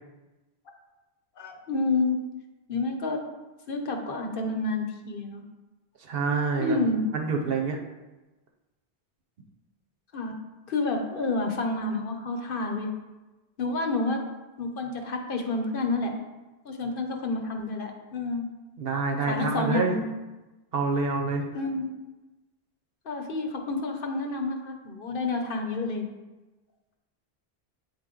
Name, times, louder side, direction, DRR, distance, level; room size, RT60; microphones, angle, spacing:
voice 1, 1.4-2.2 2.7-3.2 3.7-5.4 6.3-7.0 10.1-10.3 10.7-12.9 13.6-14.2 14.6-16.2 16.6-18.5 19.3-20.0 21.5-21.9 23.0-26.1, left 2 dB, 60° left, 4 dB, 0.9 m, -29 dB
voice 2, 6.0-6.8 7.1-7.8 18.8-19.9 20.7-21.5, right 4 dB, 65° right, 2 dB, 0.9 m, -27 dB
8.5 x 3.6 x 3.8 m, 1.1 s
omnidirectional pair, 1.1 m